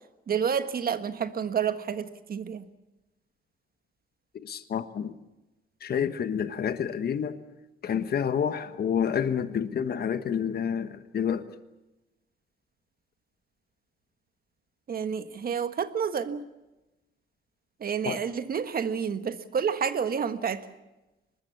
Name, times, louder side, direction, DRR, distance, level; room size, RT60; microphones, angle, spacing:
voice 1, 0.3-2.6 14.9-16.5 17.8-20.7, right 7 dB, 50° right, 1.5 m, -29 dB
voice 2, 4.4-5.1 5.8-7.4 7.8-11.5 18.0-18.2, left 8 dB, 50° left, 1.3 m, -29 dB
24.0 x 20.5 x 7.1 m
cardioid pair, 90°, 20 cm